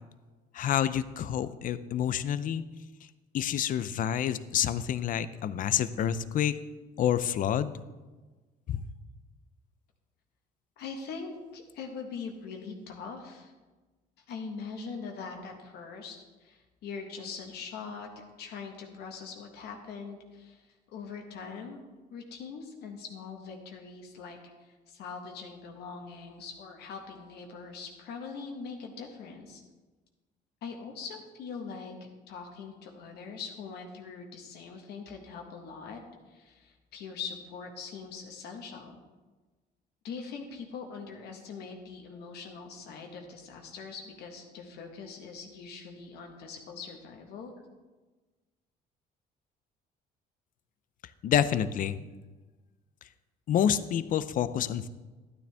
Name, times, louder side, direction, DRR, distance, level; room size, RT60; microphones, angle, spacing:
voice 1, 0.5-2.6 3.3-6.6 7.0-7.7 8.7-8.8 51.2-52.0 53.5-54.9, left 10 dB, 50° left, 14 dB, 0.6 m, -28 dB
voice 2, 10.8-13.5 14.3-18.1 18.4-20.7 20.9-21.8 22.1-24.4 24.6-29.6 30.6-31.9 32.3-36.0 36.3-39.0 40.0-47.5, left 5 dB, 75° left, 2 dB, 1.5 m, -42 dB
12.0 x 9.4 x 3.5 m, 1.3 s
cardioid pair, 110°, 17 cm